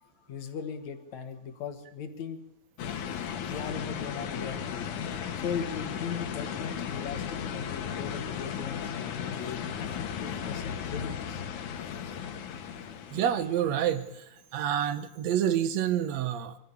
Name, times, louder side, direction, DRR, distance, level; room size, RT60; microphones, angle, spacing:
voice 1, 0.0-2.4 3.4-5.0 5.2-11.5, left 6 dB, 70° left, 7 dB, 2.8 m, -39 dB
sound 1, 2.8-14.0, left 8 dB, 85° left, 2.9 m, -36 dB
voice 2, 13.1-14.2 14.5-16.6, right 10 dB, 70° right, 12 dB, 2.2 m, -28 dB
24.0 x 13.5 x 8.6 m, 0.85 s
omnidirectional pair, 3.4 m